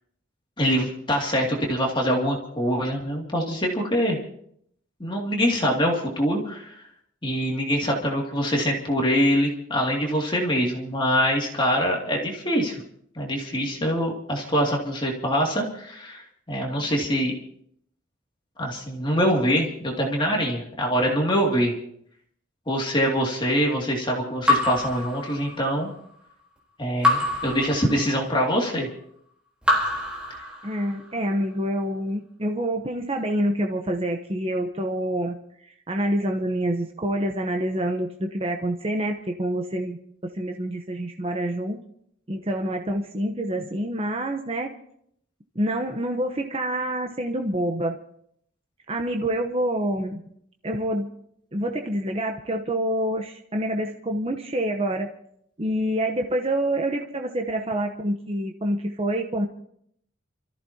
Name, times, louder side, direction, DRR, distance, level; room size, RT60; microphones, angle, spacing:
voice 1, 0.6-4.2 5.0-6.7 7.2-12.8 13.2-17.3 18.6-21.8 22.7-25.9 26.8-28.9, equal, 25° left, -1 dB, 2.5 m, -24 dB
Raindrop / Drip, 24.5-25.8 27.0-28.4 29.6-31.0, left 2 dB, 5° right, 3.8 m, -25 dB
voice 2, 30.6-35.4 35.6-41.8 42.3-44.7 45.5-48.0 48.9-50.2 50.6-51.1 51.5-55.1 55.6-59.5, right 1 dB, 30° right, 3 dB, 1.0 m, -27 dB
28.5 x 14.5 x 2.9 m, 0.68 s
head